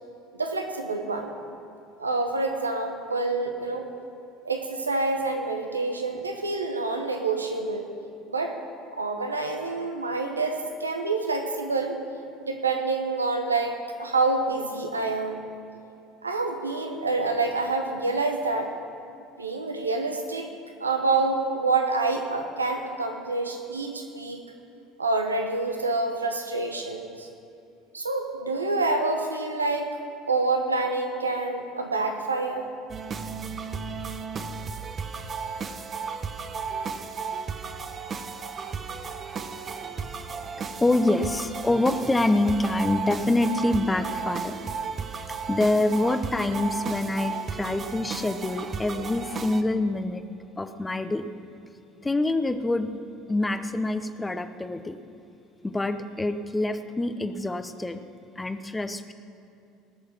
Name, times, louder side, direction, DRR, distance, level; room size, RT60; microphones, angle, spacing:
voice 1, 0.3-1.3 2.0-3.8 4.4-7.9 8.3-8.5 8.9-12.0 12.4-15.4 16.2-18.7 19.4-20.5 20.8-24.4 25.0-27.3 27.9-29.9 30.3-32.7, right 3 dB, 90° right, 4 dB, 1.0 m, -27 dB
sound 1, 32.9-49.6, right 5 dB, 35° right, 0.8 m, -34 dB
voice 2, 40.8-44.6 45.5-50.2 50.6-51.3 52.0-52.9 53.3-55.0 55.6-58.0 58.4-59.1, left 2 dB, 15° left, 10 dB, 0.8 m, -26 dB
19.0 x 6.7 x 6.0 m, 2.6 s
figure-of-eight pair, 65°, 0 cm